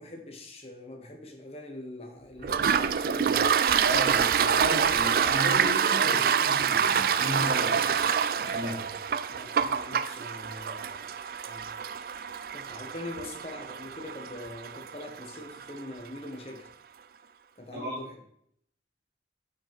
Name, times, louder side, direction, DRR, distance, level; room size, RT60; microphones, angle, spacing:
voice 1, 0.0-3.5 9.3-11.1 11.4-11.7 12.5-16.7 17.6-18.1, left 1 dB, 35° left, 3 dB, 1.4 m, -42 dB
Toilet flush, 2.4-15.8, right 7 dB, 50° right, 0.3 m, -27 dB
voice 2, 3.8-8.0 8.4-8.8 17.7-18.0, equal, 70° right, -3 dB, 3.1 m, -33 dB
8.1 x 6.6 x 3.5 m, 0.69 s
head